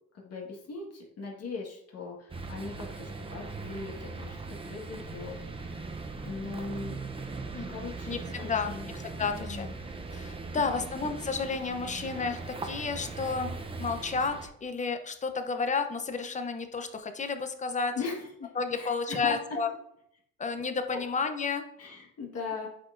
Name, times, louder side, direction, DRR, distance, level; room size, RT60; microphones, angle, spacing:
voice 1, 0.1-4.4 4.6-5.9 6.2-7.0 7.7-8.9 9.2-9.7 10.5-10.9 17.9-19.6 21.8-22.7, left 4 dB, 45° left, -1 dB, 1.7 m, -40 dB
sound 1, 2.3-14.5, right 3 dB, 15° right, 0.7 m, -39 dB
voice 2, 8.1-9.7 10.1-13.5 13.8-17.9 18.5-19.7 20.4-21.6, left 4 dB, 20° left, 7 dB, 0.8 m, -31 dB
8.3 x 4.7 x 2.6 m, 0.72 s
cardioid pair, 100°, 33 cm